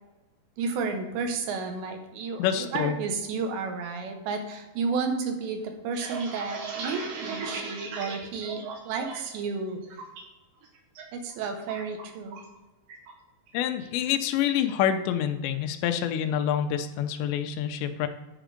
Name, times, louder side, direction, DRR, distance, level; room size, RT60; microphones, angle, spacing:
voice 1, 0.6-9.8 11.1-12.4, right 4 dB, 80° right, 4 dB, 3.4 m, -32 dB
voice 2, 2.4-3.0 13.5-18.1, left 9 dB, 85° left, 7 dB, 3.0 m, -27 dB
sound 1, 5.7-9.4 9.7-10.2 10.6-11.0 11.3-12.6 12.9-13.1 13.5-13.9, right 4 dB, 65° right, 2.8 m, -38 dB
10.0 x 5.9 x 5.1 m, 1.1 s
omnidirectional pair, 5.1 m